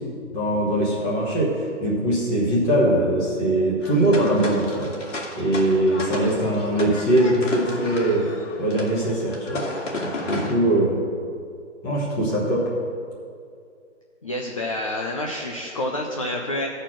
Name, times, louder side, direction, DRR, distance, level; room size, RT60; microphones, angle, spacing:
voice 1, 0.3-1.5 1.8-4.9 5.4-8.3 8.6-9.7 10.2-11.0 11.8-12.6, right 1 dB, 10° left, -5 dB, 1.0 m, -21 dB
sound 1, 3.8-10.5, left 2 dB, 85° left, 2.2 m, -33 dB
voice 2, 14.2-16.7, left 1 dB, 30° left, 0 dB, 0.5 m, -28 dB
13.0 x 4.4 x 6.1 m, 2.3 s
hypercardioid pair, 170°, 36 cm